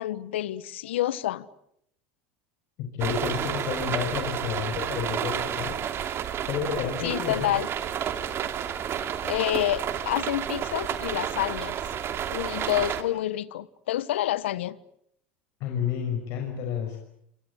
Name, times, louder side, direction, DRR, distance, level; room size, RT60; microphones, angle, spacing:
voice 1, 0.0-1.5 7.0-7.7 8.9-11.8 12.2-14.8, left 13 dB, 80° left, 1.3 m, -28 dB
voice 2, 2.8-5.8 6.4-7.5 15.6-17.0, left 7 dB, 60° left, 5.9 m, -30 dB
sound 1, 3.0-13.0, right 9 dB, 40° right, 2.9 m, -31 dB
28.0 x 26.0 x 8.2 m
hypercardioid pair, 90°, 6 cm